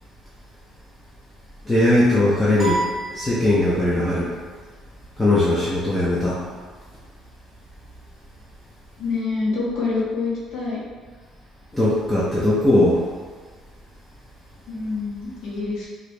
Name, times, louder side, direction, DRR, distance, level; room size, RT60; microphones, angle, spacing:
voice 1, 1.7-2.8 3.1-4.3 5.2-6.4 11.7-13.0, left 1 dB, 10° left, -8 dB, 0.5 m, -19 dB
sound 1, 2.6-4.0, right 2 dB, 30° right, 0.9 m, -29 dB
voice 2, 9.0-10.8 14.7-15.9, left 3 dB, 70° left, -6 dB, 1.1 m, -26 dB
2.8 x 2.5 x 3.2 m, 1.5 s
cardioid pair, 130°, 0 cm